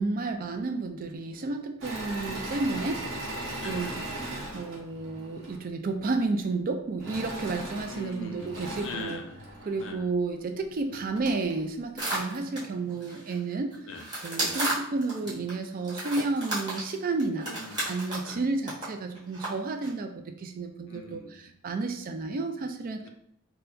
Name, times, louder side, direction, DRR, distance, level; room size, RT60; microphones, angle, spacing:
voice 1, 0.0-3.3 3.6-3.9 4.5-9.2 9.7-13.7 14.2-17.5 17.9-21.2 21.6-23.0, right 3 dB, 45° right, 6 dB, 0.4 m, -31 dB
Engine / Mechanisms, 1.8-5.6 7.0-9.9 10.6-10.7 11.0-11.5, right 1 dB, 65° right, 0.9 m, -38 dB
voice 2, 3.6-4.0 7.9-9.5 9.8-10.1 10.9-11.1 13.9-14.0 14.4-14.6 17.4-17.9 18.3-18.4 20.9-21.5 23.0-23.1, left 2 dB, 65° left, 4 dB, 0.5 m, -42 dB
sound 1, 12.0-13.3 13.7-15.5 15.8-18.4 18.7-18.8 19.1-19.5 19.8-19.9, right 2 dB, 20° right, 1.3 m, -33 dB
4.3 x 2.2 x 2.6 m, 0.74 s
head